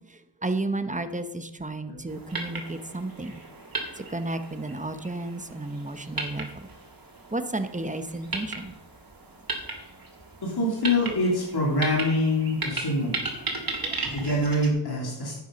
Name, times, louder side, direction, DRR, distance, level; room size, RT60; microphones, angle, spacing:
voice 1, 0.4-3.4 4.0-6.5 7.3-8.7 13.8-13.9, right 2 dB, 15° right, 9 dB, 1.1 m, -32 dB
sound 1, 2.1-14.7, right 3 dB, 50° right, 2.7 m, -36 dB
voice 2, 10.4-13.2 14.1-15.3, left 1 dB, 55° left, -3 dB, 3.2 m, -25 dB
10.0 x 8.5 x 5.3 m, 0.86 s
cardioid pair, 55°, 45 cm